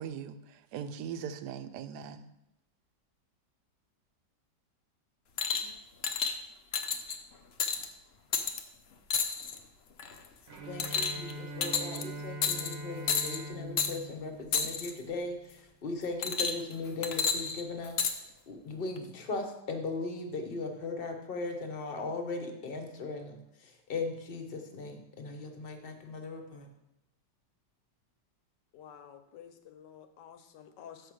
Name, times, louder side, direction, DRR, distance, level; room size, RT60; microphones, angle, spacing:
voice 1, 0.0-2.3, right 8 dB, 75° right, 10 dB, 1.1 m, -40 dB
sound 1, 5.4-5.7 6.0-6.3 6.7-7.2 7.6-7.8 8.3-8.6 9.1-9.6 10.0-10.3 10.8-11.3 11.6-12.0 12.4-12.7 13.1-13.4 13.8-13.9 14.5-14.9 16.2-16.7 17.0-18.1 19.0-19.1, left 6 dB, 65° left, 0.6 m, -30 dB
Bowed string instrument, 10.5-15.4, right 1 dB, 50° right, 0.9 m, -43 dB
voice 2, 10.6-26.7, left 3 dB, 40° left, 5 dB, 0.9 m, -38 dB
voice 3, 28.7-31.1, left 8 dB, 80° left, 9 dB, 1.4 m, -51 dB
6.8 x 5.1 x 6.2 m, 0.89 s
omnidirectional pair, 1.9 m